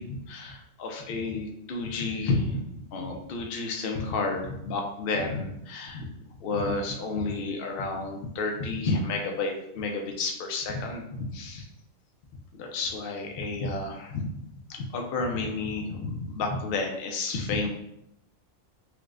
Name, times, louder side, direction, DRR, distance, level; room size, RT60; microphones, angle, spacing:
voice 1, 0.0-6.1 6.4-11.7 12.5-14.3 14.7-17.7, left 3 dB, 60° left, 2 dB, 0.6 m, -31 dB
4.5 x 2.1 x 2.4 m, 0.79 s
omnidirectional pair, 1.4 m